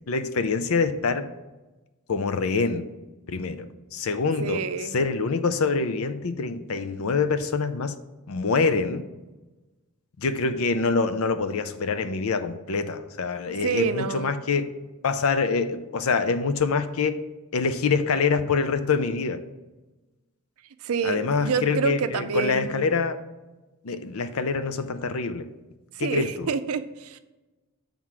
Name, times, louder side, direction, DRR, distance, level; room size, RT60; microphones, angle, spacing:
voice 1, 0.1-1.3 2.1-2.9 3.3-8.0 8.3-9.0 10.2-14.7 15.0-17.2 17.5-19.4 21.0-23.2 23.8-25.5 26.0-26.5, left 4 dB, 65° left, 10 dB, 0.5 m, -25 dB
voice 2, 4.4-5.0 13.6-14.4 20.8-22.7 25.9-27.2, right 6 dB, 70° right, 10 dB, 0.5 m, -27 dB
7.4 x 3.6 x 6.0 m, 1.1 s
head